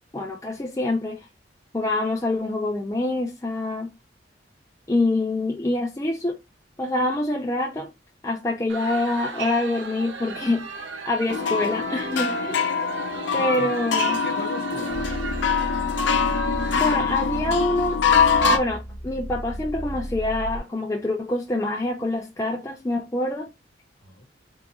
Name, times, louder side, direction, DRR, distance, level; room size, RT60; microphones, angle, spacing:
voice 1, 0.1-1.3 1.7-3.9 4.9-6.4 6.8-7.9 8.2-12.7 13.3-14.2 16.8-18.0 18.5-23.5, left 2 dB, 15° left, 0.4 m, -26 dB
sound 1, 8.7-17.0, right 4 dB, 70° right, 0.6 m, -36 dB
sound 2, 11.3-18.6, left 5 dB, 70° left, 0.5 m, -23 dB
voice 2, 13.1-13.7 14.2-15.1 24.0-24.2, left 1 dB, 55° left, 1.0 m, -37 dB
sound 3, 14.9-20.6, equal, 90° right, 1.7 m, -33 dB
3.6 x 2.5 x 2.9 m
head